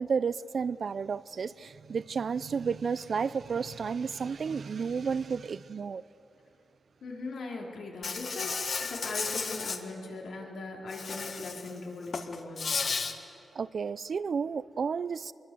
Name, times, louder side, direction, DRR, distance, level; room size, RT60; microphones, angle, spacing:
voice 1, 0.0-6.0 13.5-15.3, right 6 dB, 55° right, 18 dB, 0.5 m, -32 dB
voice 2, 7.0-8.6 8.9-12.7, left 3 dB, 75° left, -1 dB, 4.2 m, -39 dB
Insect, 8.0-9.8 10.9-11.7 12.0-13.1, left 4 dB, 55° left, 1.8 m, -33 dB
26.0 x 22.5 x 7.8 m, 2.9 s
wide cardioid pair, 105°, 0 cm